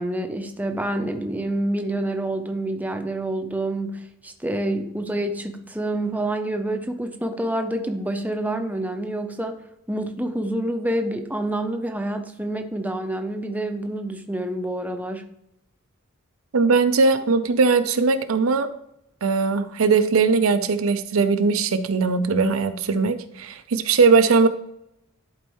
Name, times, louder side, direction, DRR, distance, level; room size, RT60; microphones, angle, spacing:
voice 1, 0.0-9.6 9.9-15.2, right 1 dB, 10° right, 5 dB, 0.6 m, -27 dB
voice 2, 16.5-18.7 19.2-24.5, right 4 dB, 90° right, 9 dB, 0.6 m, -19 dB
11.0 x 4.4 x 3.1 m, 0.79 s
head